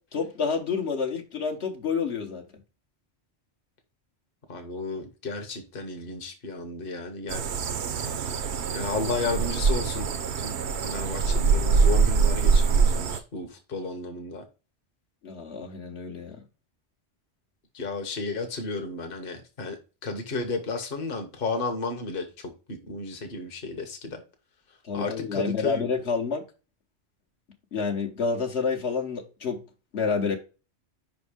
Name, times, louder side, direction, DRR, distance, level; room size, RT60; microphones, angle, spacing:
voice 1, 0.1-2.4 15.2-16.4 24.8-26.4 27.7-29.6 29.9-30.4, left 5 dB, 75° left, 1.5 m, -29 dB
voice 2, 4.5-7.5 8.0-8.1 8.7-10.1 10.4-10.6 10.8-14.4 17.7-22.2 22.7-24.2 24.9-25.8, left 3 dB, 55° left, 1.3 m, -33 dB
sound 1, 7.3-13.2, right 5 dB, 75° right, 1.0 m, -24 dB
5.3 x 4.2 x 5.0 m
omnidirectional pair, 1.1 m